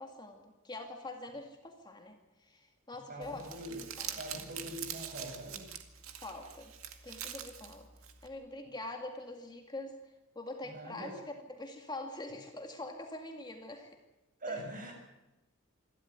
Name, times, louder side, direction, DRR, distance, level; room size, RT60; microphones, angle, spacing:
voice 1, 0.0-3.4 3.7-4.2 6.2-6.7 7.0-7.9 8.2-14.0 14.5-14.6, left 2 dB, 20° left, 3 dB, 2.2 m, -44 dB
voice 2, 3.1-3.8 4.2-5.7 10.7-11.2 14.4-14.9, right 1 dB, 40° right, 3 dB, 6.5 m, -43 dB
Crumpling crinkling, 3.2-8.3, right 9 dB, 85° right, 2.1 m, -44 dB
26.5 x 13.0 x 9.5 m, 0.98 s
head